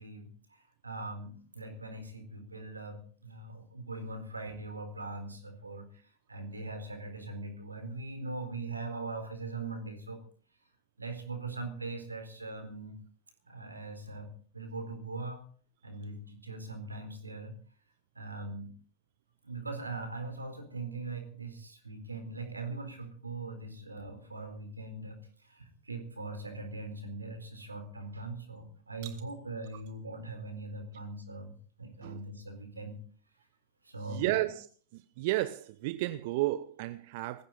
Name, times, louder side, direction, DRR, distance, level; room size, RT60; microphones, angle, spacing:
voice 1, 0.0-10.2 11.0-12.9 13.5-14.3 14.5-15.4 15.8-17.5 18.1-18.7 19.4-25.2 25.4-31.5 31.8-33.0 33.8-34.5, right 3 dB, 80° right, 4.0 m, -41 dB
voice 2, 34.1-34.7 35.2-37.4, right 17 dB, 50° right, 0.7 m, -32 dB
19.5 x 15.5 x 3.9 m
figure-of-eight pair, 90°, 0 cm